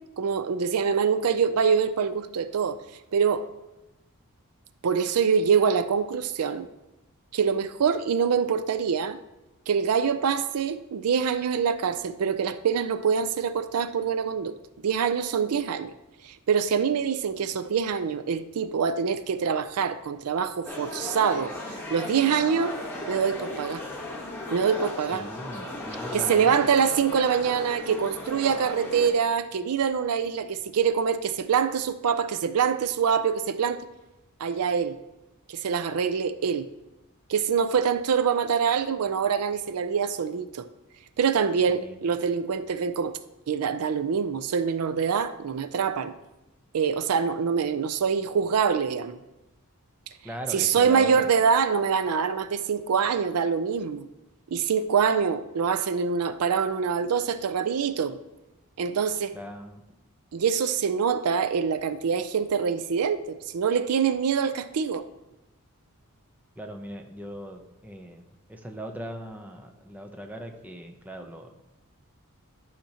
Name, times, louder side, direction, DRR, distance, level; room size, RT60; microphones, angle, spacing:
voice 1, 0.2-2.8 3.1-3.5 4.8-6.7 7.3-9.2 9.7-14.5 14.8-15.9 16.2-21.5 21.9-22.8 23.1-23.8 24.5-25.3 26.1-33.8 34.4-35.0 35.5-36.7 37.3-40.7 41.2-43.1 43.5-46.1 46.7-49.2 50.5-54.1 54.5-58.2 58.8-59.3 60.3-65.0, right 6 dB, 85° right, 0.4 m, -25 dB
sound 1, 20.7-29.1, left 2 dB, 10° left, 1.2 m, -36 dB
voice 2, 25.0-26.6 41.7-42.0 50.2-51.3 59.3-59.8 66.6-71.5, equal, 5° right, 0.6 m, -40 dB
11.5 x 5.8 x 2.9 m
head